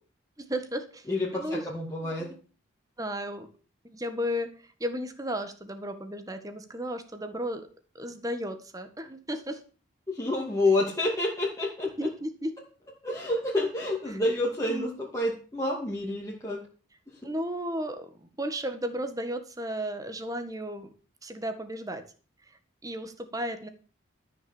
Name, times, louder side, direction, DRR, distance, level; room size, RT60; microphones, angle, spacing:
voice 1, 0.4-1.1 1.3-1.6 2.0-2.3 3.0-3.5 3.8-7.6 7.9-9.6 12.0-12.5 14.1-14.2 14.7-15.0 17.2-20.9 21.2-22.0 22.8-23.7, equal, 20° right, 8 dB, 1.5 m, -34 dB
voice 2, 1.1-2.3 10.1-12.1 13.0-16.6 17.1-17.3, left 2 dB, 15° left, -4 dB, 2.4 m, -29 dB
13.5 x 6.5 x 7.1 m, 0.39 s
head